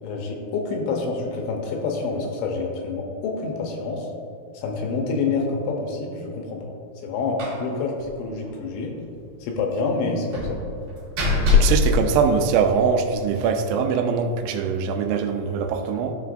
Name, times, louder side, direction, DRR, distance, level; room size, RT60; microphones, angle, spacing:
voice 1, 0.0-4.1 4.5-6.7 7.0-7.9 8.2-8.9 9.4-10.6, left 4 dB, 80° left, 1 dB, 2.9 m, -27 dB
Slam, 7.4-7.7 8.0-8.1 8.4-8.5 10.3-12.9, left 4 dB, 55° right, 2.6 m, -22 dB
voice 2, 11.5-16.1, right 6 dB, 90° right, 6 dB, 3.0 m, -22 dB
14.0 x 5.6 x 2.5 m, 2.7 s
omnidirectional pair, 5.5 m